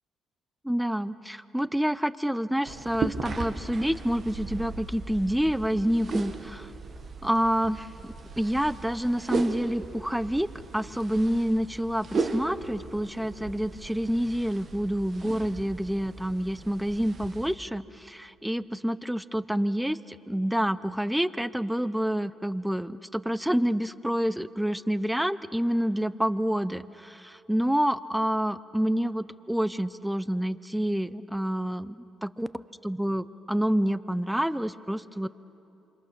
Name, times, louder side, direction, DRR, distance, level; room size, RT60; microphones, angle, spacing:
voice 1, 0.6-6.7 7.2-10.5 10.7-32.5 32.8-35.3, equal, 5° right, 15 dB, 0.7 m, -28 dB
sound 1, 2.6-17.5, right 4 dB, 50° right, 1.7 m, -37 dB
27.5 x 25.5 x 6.7 m, 2.9 s
cardioid pair, 90°, 0 cm